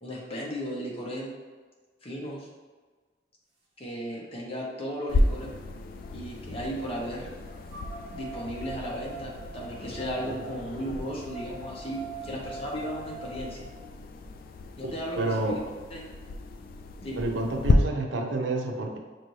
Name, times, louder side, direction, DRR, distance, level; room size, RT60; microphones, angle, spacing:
voice 1, 0.0-1.3 2.0-2.5 3.8-5.5 6.1-7.3 8.1-13.7 14.8-15.6 15.9-16.0 17.0-17.3, equal, 30° left, -4 dB, 1.0 m, -35 dB
sound 1, 3.9-4.0 4.6-6.5 7.7-13.7, right 3 dB, 35° right, 0.9 m, -44 dB
sound 2, 5.1-17.7, left 2 dB, 50° left, 0.3 m, -33 dB
voice 2, 14.8-15.6 17.2-19.0, right 2 dB, 85° right, 2 dB, 0.6 m, -29 dB
6.0 x 2.6 x 3.1 m, 1.4 s
head